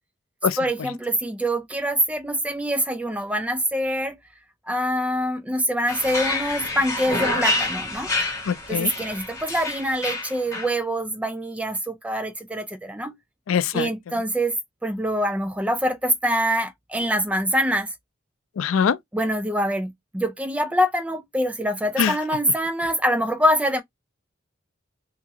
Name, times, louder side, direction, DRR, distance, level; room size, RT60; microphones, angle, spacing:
voice 1, 0.6-4.2 4.7-8.1 8.7-13.1 13.7-14.6 14.8-17.9 19.1-23.8, equal, 5° right, 0.3 m, -24 dB
sound 1, 5.9-10.7, left 2 dB, 15° left, 1.1 m, -27 dB
voice 2, 8.5-8.9 13.5-13.9 18.6-19.0 22.0-22.1, left 7 dB, 80° left, 0.4 m, -22 dB
2.8 x 2.4 x 2.7 m
head